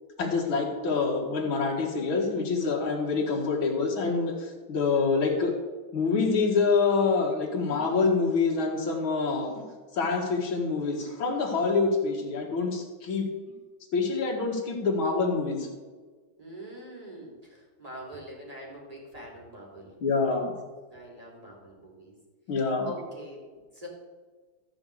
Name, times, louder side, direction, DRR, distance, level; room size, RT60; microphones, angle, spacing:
voice 1, 0.2-5.5 5.9-9.7 9.9-13.3 13.9-15.7 20.0-20.6 22.5-22.9, left 4 dB, 65° left, 1 dB, 2.6 m, -26 dB
voice 2, 16.4-19.9 20.9-22.1 22.8-23.9, equal, 15° right, -2 dB, 3.1 m, -44 dB
14.0 x 5.2 x 8.1 m, 1.4 s
omnidirectional pair, 2.4 m